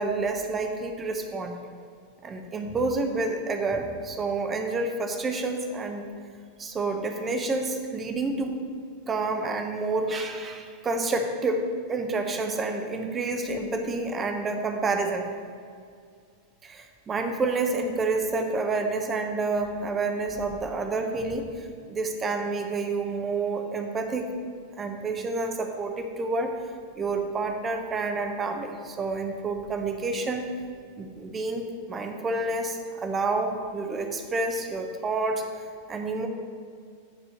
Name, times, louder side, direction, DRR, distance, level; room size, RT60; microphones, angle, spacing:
voice 1, 0.0-1.5 2.2-6.0 6.6-8.6 9.1-15.3 16.6-24.3 24.8-26.5 27.0-30.5 31.0-35.4 35.9-36.3, right 3 dB, 20° right, 4 dB, 0.9 m, -29 dB
9.5 x 4.3 x 6.5 m, 2.2 s
figure-of-eight pair, 90°, 0 cm